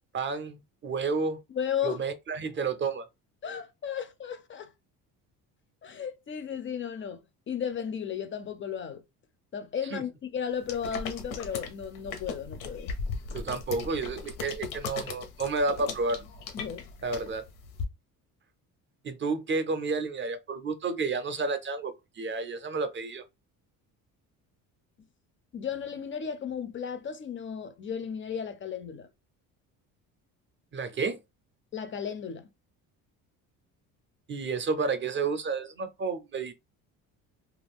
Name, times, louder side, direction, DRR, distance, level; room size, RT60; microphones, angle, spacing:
voice 1, 0.1-1.4 1.8-3.1 9.9-10.0 13.3-16.2 17.0-17.4 19.0-23.2 30.7-31.2 34.3-36.5, right 4 dB, 35° right, 0.5 m, -31 dB
voice 2, 1.5-2.0 3.4-4.7 5.8-7.2 7.5-9.0 9.5-13.0 16.5-16.9 25.5-29.1 31.7-32.5, left 8 dB, 35° left, 0.4 m, -34 dB
sound 1, 10.6-17.8, left 5 dB, 90° left, 0.9 m, -38 dB
2.4 x 2.3 x 3.5 m
cardioid pair, 110°, 36 cm